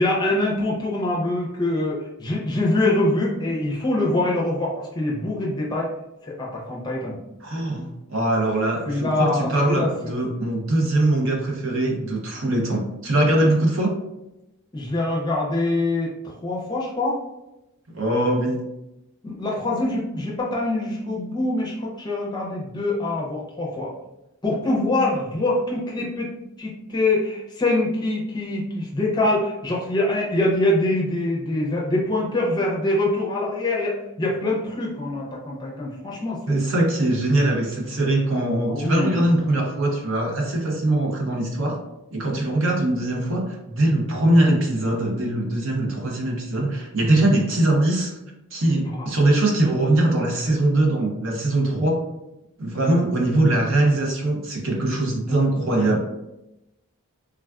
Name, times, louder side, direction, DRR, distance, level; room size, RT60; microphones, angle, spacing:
voice 1, 0.0-5.9 6.2-7.2 8.9-9.9 12.4-12.6 13.4-13.5 14.7-17.2 19.2-23.9 24.4-26.3 26.6-36.6 38.7-39.2 48.9-49.1 55.3-55.4 55.8-55.9, left 2 dB, 20° left, -3 dB, 0.5 m, -24 dB
voice 2, 7.4-14.0 17.9-18.6 36.5-41.8 42.1-48.1 48.5-52.0 52.6-56.0, right 1 dB, 60° right, 0 dB, 0.6 m, -22 dB
3.4 x 2.3 x 2.3 m, 0.91 s
head